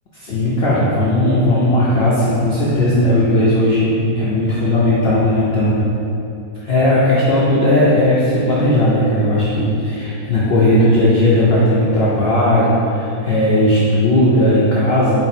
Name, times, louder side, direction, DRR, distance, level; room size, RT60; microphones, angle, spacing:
voice 1, 0.2-5.8 6.6-15.2, left 1 dB, 70° left, -8 dB, 0.5 m, -16 dB
4.4 x 2.1 x 4.1 m, 2.8 s
omnidirectional pair, 1.7 m